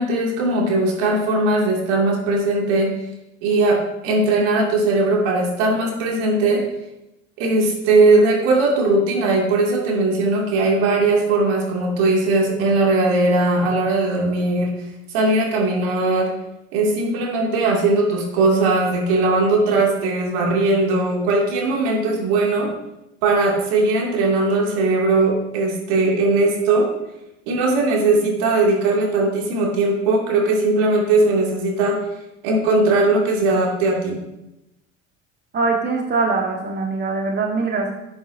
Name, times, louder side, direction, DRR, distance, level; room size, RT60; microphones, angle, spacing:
voice 1, 0.0-3.0 3.4-6.7 7.4-14.7 15.1-16.4 16.7-22.7 23.2-26.9 27.5-32.0 32.4-34.2, right 2 dB, 65° right, -1 dB, 2.4 m, -19 dB
voice 2, 35.5-37.9, right 4 dB, 30° right, 1 dB, 1.4 m, -22 dB
11.5 x 7.8 x 2.7 m, 0.92 s
hypercardioid pair, 70°, 36 cm